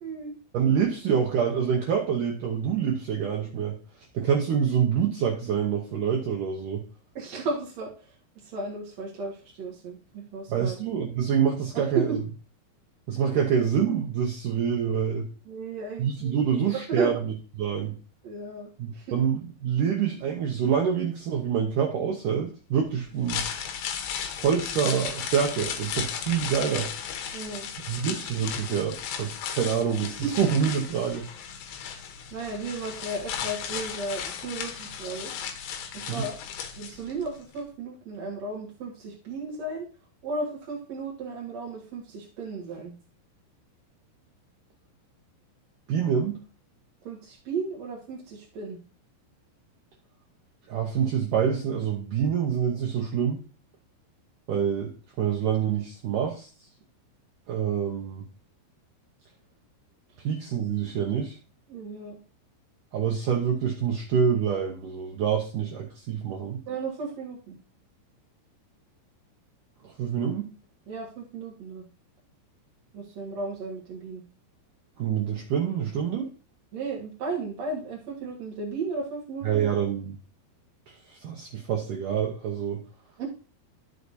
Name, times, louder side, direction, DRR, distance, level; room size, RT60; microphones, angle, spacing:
voice 1, 0.0-0.4 7.1-8.1 8.4-10.8 11.7-12.2 15.5-17.1 18.2-19.2 27.3-27.7 30.2-30.3 32.3-35.3 35.9-36.4 36.8-39.9 40.2-42.9 47.0-48.8 61.7-62.2 66.7-67.6 70.9-71.8 72.9-74.2 76.7-79.7 83.2-83.3, right 3 dB, 60° right, -3 dB, 1.9 m, -34 dB
voice 2, 0.5-3.8 4.1-6.8 10.5-12.2 13.1-15.3 16.0-17.2 17.6-18.0 18.8-23.5 24.4-26.9 27.9-31.3 36.1-36.3 45.9-46.4 50.7-53.4 54.5-56.5 57.5-58.2 60.2-61.4 62.9-66.6 69.8-70.5 75.0-76.3 79.4-80.2 80.9-82.8, right 7 dB, 80° right, -1 dB, 1.8 m, -26 dB
sound 1, 23.1-37.3 37.6-37.7, left 8 dB, 75° left, 2.8 m, -35 dB
12.5 x 6.5 x 2.7 m, 0.36 s
omnidirectional pair, 5.3 m